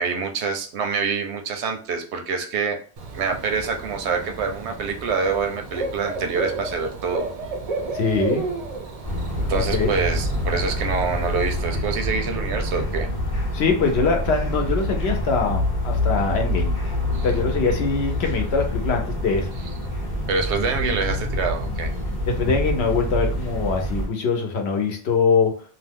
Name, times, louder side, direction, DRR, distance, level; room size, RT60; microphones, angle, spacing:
voice 1, 0.0-2.8 3.1-7.3 9.5-13.1 17.1-17.3 20.3-21.9, right 5 dB, 85° right, 4 dB, 0.9 m, -26 dB
Bird / Cricket, 3.0-11.6, right 3 dB, 55° right, 0.4 m, -32 dB
voice 2, 7.9-8.4 9.5-9.9 13.5-16.7 17.2-19.5 22.3-25.5, left 4 dB, 75° left, 3 dB, 0.9 m, -23 dB
sound 1, 9.0-24.1, left 1 dB, 25° left, 0.9 m, -26 dB
2.7 x 2.1 x 3.4 m, 0.40 s
omnidirectional pair, 1.1 m